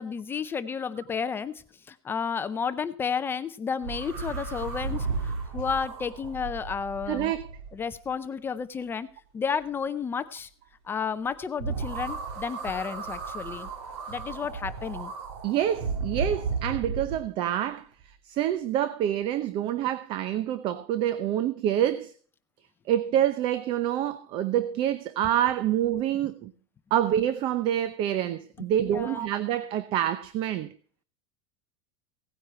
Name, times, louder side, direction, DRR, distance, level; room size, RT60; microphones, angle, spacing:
voice 1, 0.0-7.3 7.7-9.1 9.3-10.5 10.9-13.7 14.1-15.1 28.8-29.3, left 6 dB, 15° left, 0.6 m, -32 dB
sound 1, 3.8-8.1 11.6-17.2, right 4 dB, 75° right, 3.3 m, -34 dB
voice 2, 7.1-7.5 15.4-17.9 18.2-22.1 22.9-26.5 26.9-30.7, right 11 dB, 35° right, 0.7 m, -27 dB
17.0 x 9.5 x 4.3 m
supercardioid pair, 165°, 14 cm